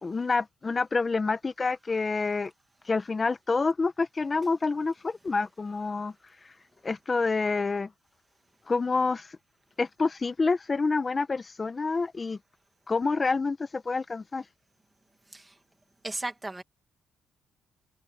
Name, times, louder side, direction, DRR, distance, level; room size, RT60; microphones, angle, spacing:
voice 1, 0.0-2.5 2.8-6.1 6.8-7.9 8.7-9.4 9.8-12.4 12.9-14.4, left 4 dB, 30° left, 1.3 m, -28 dB
voice 2, 16.0-16.6, right 2 dB, 15° right, 2.3 m, -35 dB
cardioid pair, 90°, 0 cm